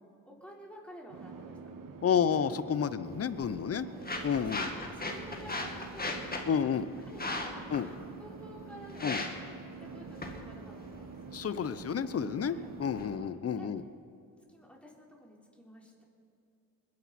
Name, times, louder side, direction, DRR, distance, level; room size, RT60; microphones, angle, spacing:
voice 1, 0.2-2.2 3.7-9.5 9.8-11.2 12.5-12.7 13.0-13.2 13.5-13.7 14.5-16.0, equal, 5° left, -3 dB, 4.2 m, -52 dB
sound 1, 1.1-13.3, right 4 dB, 60° right, 1.3 m, -47 dB
voice 2, 2.0-3.9 4.2-4.7 6.5-6.9 7.7-7.9 9.0-9.2 11.3-13.8, left 7 dB, 40° left, 14 dB, 0.8 m, -30 dB
sound 2, 3.1-13.1, left 2 dB, 25° left, 2.2 m, -40 dB
21.0 x 10.5 x 4.3 m, 2.7 s
supercardioid pair, 60°, 36 cm